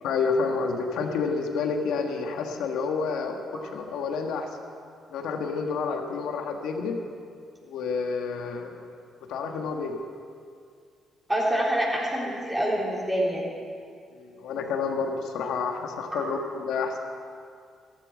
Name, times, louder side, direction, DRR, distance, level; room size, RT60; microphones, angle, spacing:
voice 1, 0.0-4.5 5.1-7.0 7.6-8.7 9.3-10.0 14.1-17.0, left 5 dB, 85° left, 3 dB, 1.5 m, -29 dB
voice 2, 11.3-13.5 16.1-16.3, right 1 dB, 10° right, -4 dB, 3.9 m, -26 dB
14.5 x 13.0 x 5.2 m, 2.3 s
cardioid pair, 90°, 0 cm